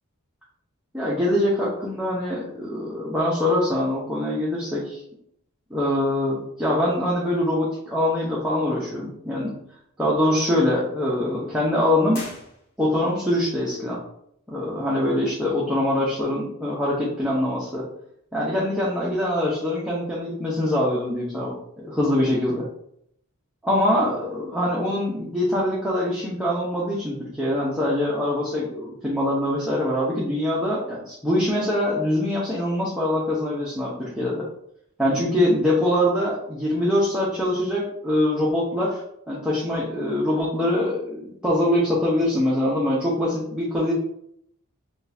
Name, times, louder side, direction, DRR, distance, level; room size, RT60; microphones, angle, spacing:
voice 1, 0.9-5.0 5.7-9.5 10.0-12.2 12.8-14.0 14.5-17.8 18.3-22.7 23.6-34.4 35.0-39.0 39.3-43.9, left 1 dB, 5° right, -7 dB, 0.8 m, -23 dB
sound 1, 12.1-13.2, left 2 dB, 45° left, 1.6 m, -41 dB
6.1 x 2.4 x 2.7 m, 0.72 s
head